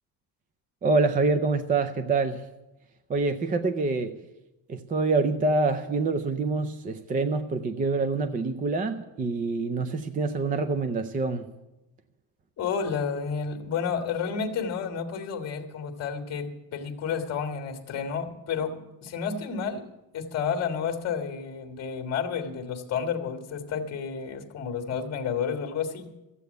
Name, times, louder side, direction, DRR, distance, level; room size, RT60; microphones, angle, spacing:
voice 1, 0.8-2.5 3.1-4.2 4.7-11.5, right 3 dB, 20° right, 10 dB, 0.4 m, -26 dB
voice 2, 12.6-19.9 20.1-26.1, left 6 dB, 35° left, 4 dB, 1.7 m, -31 dB
14.5 x 8.2 x 7.9 m, 0.97 s
cardioid pair, 170°, 42 cm